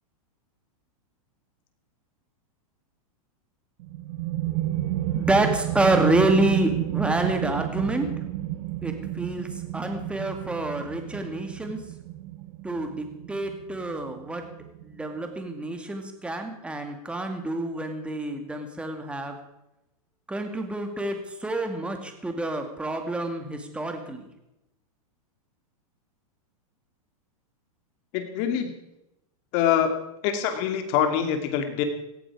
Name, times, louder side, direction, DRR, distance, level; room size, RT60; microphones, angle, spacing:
sound 1, 3.8-15.2, right 14 dB, 50° right, 1.1 m, -31 dB
voice 1, 5.2-8.1 8.8-9.5 9.7-11.8 12.6-14.4 14.8-19.4 20.3-24.2, right 2 dB, 5° right, 5 dB, 2.2 m, -27 dB
voice 2, 28.1-28.7 29.5-31.8, left 9 dB, 45° left, 7 dB, 2.5 m, -25 dB
17.5 x 14.0 x 4.9 m, 0.88 s
hypercardioid pair, 140°, 19 cm